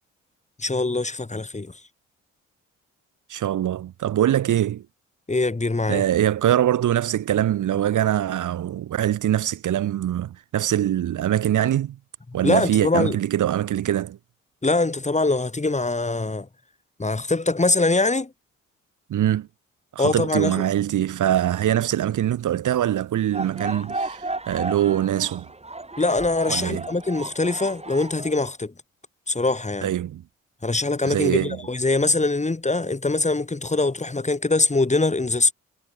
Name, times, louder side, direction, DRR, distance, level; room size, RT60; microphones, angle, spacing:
voice 1, 0.6-1.7 5.3-6.0 12.4-13.2 14.6-16.5 17.0-18.3 20.0-20.6 26.0-28.7 29.3-29.9 30.6-35.5, left 3 dB, 20° left, 4.3 m, -23 dB
voice 2, 3.3-4.8 5.9-12.0 12.3-14.2 19.1-19.5 19.9-25.5 26.5-26.8 29.8-30.2 31.0-31.6, right 11 dB, 50° right, 2.2 m, -23 dB
sound 1, 23.3-28.5, right 2 dB, 15° right, 6.3 m, -34 dB
figure-of-eight pair, 40°, 38 cm